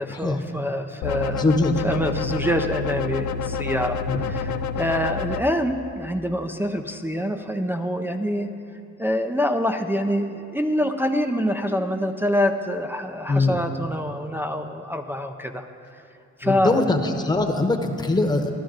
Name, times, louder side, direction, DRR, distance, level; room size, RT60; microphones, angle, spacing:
voice 1, 0.0-1.5 1.8-8.6 9.0-15.6 16.4-16.9, equal, 5° right, 3 dB, 0.5 m, -25 dB
sound 1, 1.0-5.4, left 5 dB, 70° left, 0.5 m, -28 dB
voice 2, 1.3-1.7 4.1-4.2 13.3-13.6 16.4-18.5, left 2 dB, 15° left, 4 dB, 1.0 m, -22 dB
13.0 x 11.5 x 3.9 m, 2.6 s
cardioid pair, 90°, 30 cm